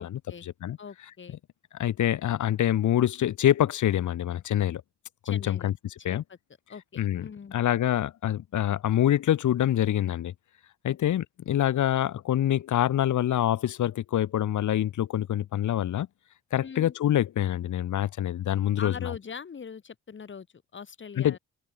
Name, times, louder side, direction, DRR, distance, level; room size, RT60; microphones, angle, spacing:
voice 1, 0.0-0.5 0.8-1.4 5.2-5.7 6.1-6.4 6.7-7.6 10.9-11.0 16.5-16.9 18.8-21.4, left 6 dB, 40° left, 5.8 m, -42 dB
voice 2, 1.8-4.8 5.3-5.7 6.0-6.2 7.0-10.3 10.8-16.1 16.5-19.1 21.2-21.4, left 11 dB, 85° left, 3.8 m, -25 dB
cardioid pair, 130°, 29 cm